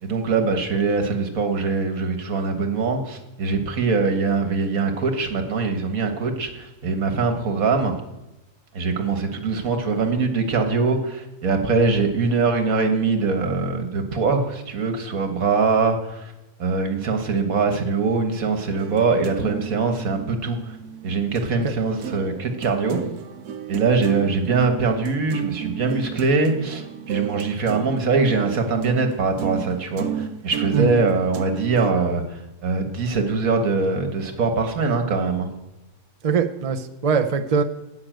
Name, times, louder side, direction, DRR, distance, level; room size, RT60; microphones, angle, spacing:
voice 1, 0.0-8.0 8.7-16.3 16.6-20.8 21.0-23.0 23.7-35.5, right 4 dB, 65° right, 5 dB, 1.8 m, -22 dB
sound 1, 18.7-21.5 21.8-31.9, right 9 dB, 85° right, 1.2 m, -33 dB
voice 2, 36.2-37.6, right 6 dB, 45° right, 6 dB, 0.5 m, -21 dB
9.7 x 6.9 x 9.0 m, 0.97 s
omnidirectional pair, 1.6 m